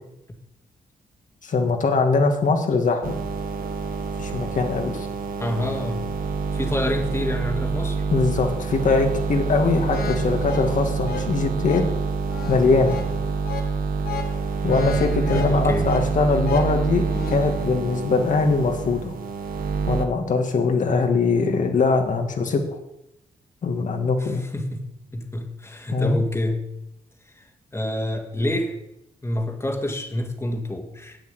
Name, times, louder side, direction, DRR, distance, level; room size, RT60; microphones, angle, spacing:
voice 1, 1.4-3.2 4.2-5.1 8.1-11.9 12.5-13.0 14.6-19.1 19.9-22.8 23.6-24.4 25.9-26.2, left 4 dB, 55° left, 4 dB, 2.0 m, -22 dB
sound 1, 3.0-20.1, right 5 dB, 70° right, 1.2 m, -27 dB
voice 2, 5.4-6.2 6.5-8.0 15.3-15.9 24.2-26.7 27.3-27.5 27.7-28.8 29.2-31.2, left 1 dB, 15° left, 3 dB, 2.1 m, -28 dB
sound 2, 9.9-17.5, left 6 dB, 85° left, 1.2 m, -36 dB
8.7 x 7.0 x 8.3 m, 0.82 s
cardioid pair, 95°, 15 cm